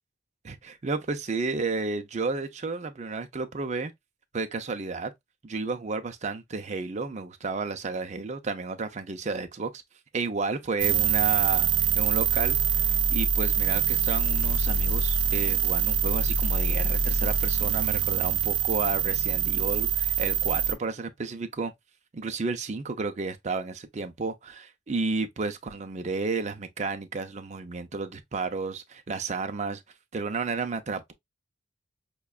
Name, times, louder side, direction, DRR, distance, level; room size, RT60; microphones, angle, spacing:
voice 1, 0.4-3.9 4.3-5.1 5.4-9.8 10.1-21.7 22.1-29.8 30.1-31.1, right 4 dB, 40° right, 0.5 m, -32 dB
sound 1, 10.8-20.7, right 7 dB, 80° right, 0.7 m, -25 dB
5.8 x 2.2 x 2.3 m
head